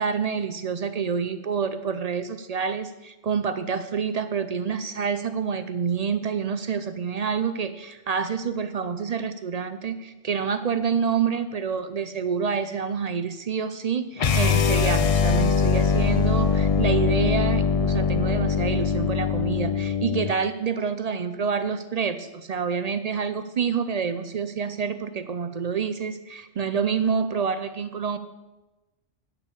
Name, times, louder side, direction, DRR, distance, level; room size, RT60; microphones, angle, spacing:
voice 1, 0.0-28.2, right 6 dB, 60° right, 11 dB, 0.4 m, -27 dB
sound 1, 14.2-20.3, left 6 dB, 60° left, 0.3 m, -22 dB
11.0 x 5.6 x 8.3 m, 1.1 s
omnidirectional pair, 1.3 m